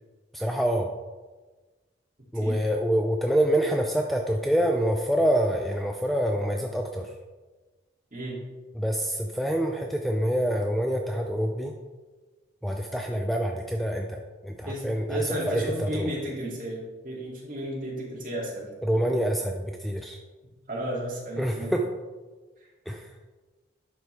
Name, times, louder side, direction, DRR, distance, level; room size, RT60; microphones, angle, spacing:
voice 1, 0.3-0.9 2.3-7.1 8.7-11.8 12.6-16.1 18.8-20.2 21.4-21.8 22.9-23.2, equal, ahead, 1 dB, 0.4 m, -26 dB
voice 2, 14.6-19.1 20.7-21.7, right 1 dB, 45° right, -5 dB, 2.3 m, -33 dB
11.0 x 4.6 x 3.3 m, 1.3 s
head